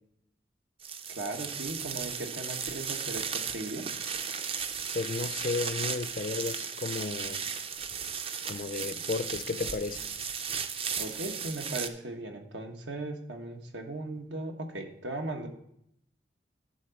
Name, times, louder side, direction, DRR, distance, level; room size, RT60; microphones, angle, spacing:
sound 1, 0.8-11.9, right 7 dB, 30° right, 0.4 m, -35 dB
voice 1, 1.1-3.8 11.0-15.5, right 2 dB, 85° right, 1.2 m, -37 dB
voice 2, 4.9-7.5 8.5-10.0, left 4 dB, 50° left, 0.4 m, -33 dB
10.5 x 3.7 x 6.9 m
head